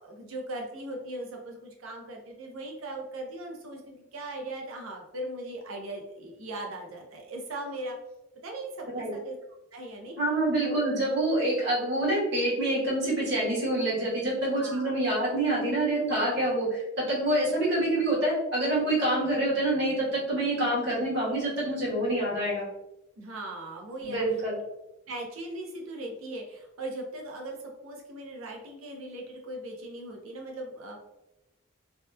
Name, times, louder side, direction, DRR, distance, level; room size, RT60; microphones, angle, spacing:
voice 1, 0.0-8.0 8.4-9.4 9.7-10.2 10.6-10.8 14.6-14.9 20.5-20.7 22.1-22.4 23.2-24.2 25.1-31.0, right 1 dB, 85° right, 1 dB, 0.6 m, -39 dB
voice 2, 10.2-22.6 24.0-24.5, right 1 dB, 55° right, -5 dB, 1.0 m, -26 dB
2.8 x 2.1 x 2.2 m, 0.92 s
head